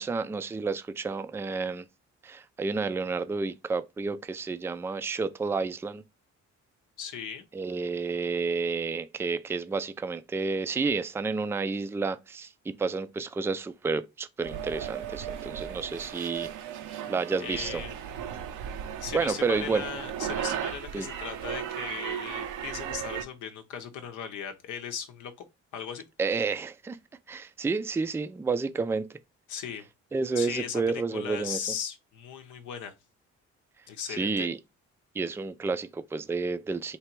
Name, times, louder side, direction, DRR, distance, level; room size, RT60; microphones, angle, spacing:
voice 1, 0.0-1.9 2.2-6.0 7.5-12.5 12.8-16.5 17.1-17.8 19.1-19.8 20.9-21.1 26.2-27.0 27.3-29.2 30.1-31.7 34.1-34.6 35.1-37.0, right 4 dB, 10° right, 0.3 m, -30 dB
voice 2, 7.0-7.5 17.4-18.0 19.0-25.3 25.7-26.0 29.5-29.9 30.4-30.8 31.1-32.9 33.9-34.5, left 8 dB, 85° left, 0.7 m, -37 dB
sound 1, 14.4-23.2, right 9 dB, 85° right, 0.7 m, -36 dB
3.3 x 2.9 x 4.5 m
cardioid pair, 90°, 30 cm